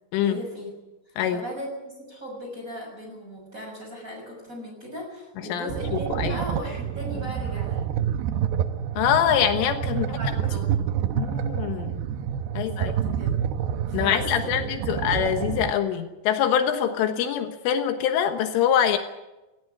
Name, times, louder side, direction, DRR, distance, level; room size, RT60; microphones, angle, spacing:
voice 1, 0.2-0.7 1.1-7.8 9.9-10.8 12.5-13.3 13.9-15.2, equal, 15° right, 2 dB, 6.6 m, -38 dB
sound 1, 5.7-15.7, right 9 dB, 75° right, 2.4 m, -28 dB
voice 2, 9.0-10.1 11.2-12.1 12.6-12.9 13.9-19.0, left 9 dB, 80° left, 6 dB, 3.7 m, -24 dB
18.5 x 17.0 x 10.0 m, 1.0 s
omnidirectional pair, 5.8 m